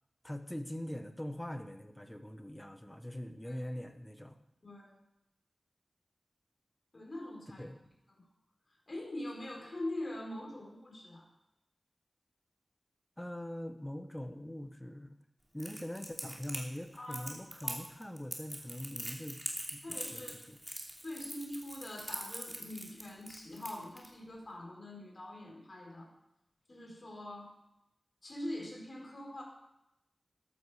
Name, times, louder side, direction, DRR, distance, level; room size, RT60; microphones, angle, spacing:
voice 1, 0.2-4.4 7.6-7.8 13.2-15.2 15.5-19.4 19.7-19.8 20.1-20.6, left 1 dB, 10° left, 8 dB, 1.2 m, -42 dB
voice 2, 4.6-5.0 6.9-7.6 8.2-8.3 8.9-11.2 17.0-17.3 17.6-17.8 19.8-20.4 21.0-26.1 26.7-27.5 28.2-29.4, left 1 dB, 45° left, 0 dB, 4.4 m, -43 dB
Crackle, 15.6-24.1, right 1 dB, 10° right, 2.8 m, -42 dB
14.0 x 12.0 x 5.0 m, 0.88 s
wide cardioid pair, 90°, 0 cm